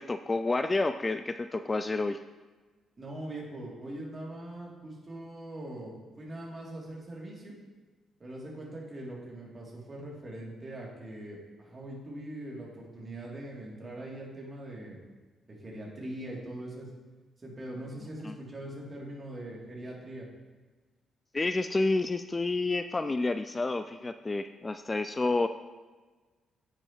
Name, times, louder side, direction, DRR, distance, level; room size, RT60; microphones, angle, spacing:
voice 1, 0.0-2.2 18.2-18.3 21.3-25.5, left 3 dB, 25° left, 10 dB, 0.3 m, -29 dB
voice 2, 3.0-7.5 8.2-15.0 15.5-16.9 17.4-20.3, right 1 dB, 30° right, -3 dB, 2.8 m, -42 dB
10.5 x 7.6 x 3.0 m, 1.3 s
figure-of-eight pair, 40°, 0 cm